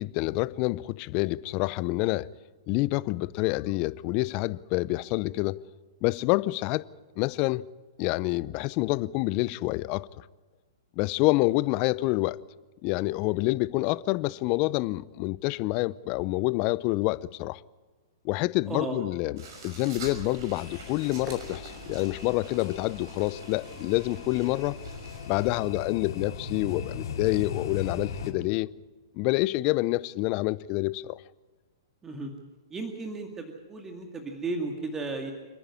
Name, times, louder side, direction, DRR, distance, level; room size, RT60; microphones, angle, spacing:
voice 1, 0.0-2.3 2.7-5.6 6.0-6.8 7.2-7.6 8.0-10.1 11.0-12.4 12.8-17.6 18.2-19.4 19.6-24.8 25.3-28.7 29.2-31.2, left 20 dB, 40° left, 0.6 m, -27 dB
voice 2, 18.7-19.0 32.0-32.3 32.7-35.3, right 3 dB, 15° right, 2.2 m, -34 dB
sound 1, 19.4-25.6, right 4 dB, 60° right, 5.9 m, -45 dB
sound 2, 20.6-28.3, left 5 dB, 70° left, 3.2 m, -39 dB
27.5 x 10.0 x 9.7 m
hypercardioid pair, 120°, 2 cm